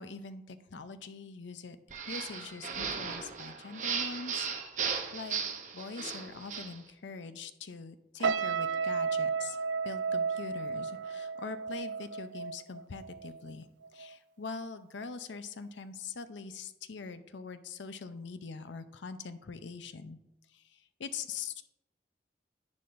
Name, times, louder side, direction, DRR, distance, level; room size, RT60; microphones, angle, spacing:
voice 1, 0.0-1.8 2.1-4.5 5.1-5.4 5.7-9.6 9.8-13.7 13.9-20.2 20.5-21.6, left 5 dB, 85° left, 11 dB, 0.6 m, -43 dB
sound 1, 1.9-6.8, right 6 dB, 45° right, 0.8 m, -36 dB
sound 2, 8.2-13.5 13.8-14.1, right 5 dB, 85° right, 0.3 m, -33 dB
10.5 x 9.5 x 2.6 m, 0.92 s
head